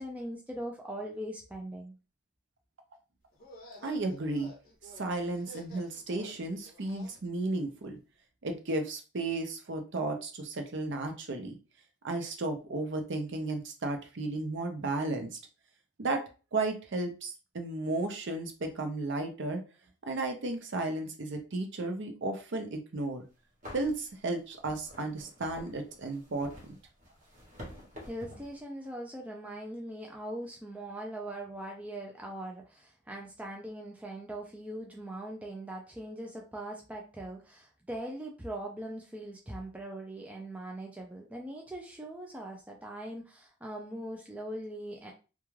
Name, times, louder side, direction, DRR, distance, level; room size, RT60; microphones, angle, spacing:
voice 1, 0.0-1.9 28.0-45.1, right 1 dB, 5° right, 0 dB, 0.3 m, -41 dB
sound 1, 3.3-7.2, left 1 dB, 40° left, 0.7 m, -52 dB
voice 2, 3.8-4.5 5.0-8.0 8.4-11.6 12.0-15.4 16.0-16.2 16.5-19.6 20.0-23.2 23.7-26.7, right 2 dB, 55° right, 5 dB, 0.6 m, -34 dB
sound 2, 23.1-23.2 23.6-28.6, left 1 dB, 35° right, 0.9 m, -49 dB
2.3 x 2.2 x 3.1 m, 0.33 s
head